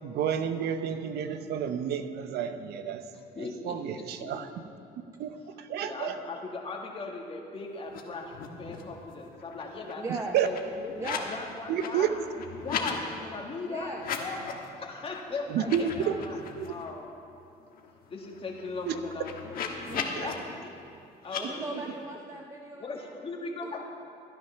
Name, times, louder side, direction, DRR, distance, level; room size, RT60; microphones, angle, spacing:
voice 1, 0.0-3.0 3.6-4.5 5.2-5.3 5.6-6.2 10.3-10.5 11.7-12.1 15.5-15.9 16.6-16.7 18.9-19.0, right 9 dB, 75° right, 9 dB, 0.8 m, -30 dB
voice 2, 3.1-4.5 5.8-10.1 10.4-10.9 11.3-12.1 12.6-14.5 14.8-16.4 16.6-17.1 18.1-20.8 21.2-22.0 22.7-23.8, left 3 dB, 35° left, 0 dB, 1.9 m, -39 dB
sound 1, 7.9-8.0 8.3-8.9 9.3-11.3 11.6-13.0 13.9-14.7 15.1-15.2 15.6-16.9 17.3-17.4 17.6-20.3 21.2-21.4, left 6 dB, 60° left, 1.4 m, -37 dB
voice 3, 10.0-10.4 10.9-11.3 13.7-14.0 19.8-20.3 21.3-23.1, right 2 dB, 20° right, 1 dB, 0.8 m, -38 dB
13.5 x 9.6 x 5.8 m, 2.6 s
cardioid pair, 110°, 17 cm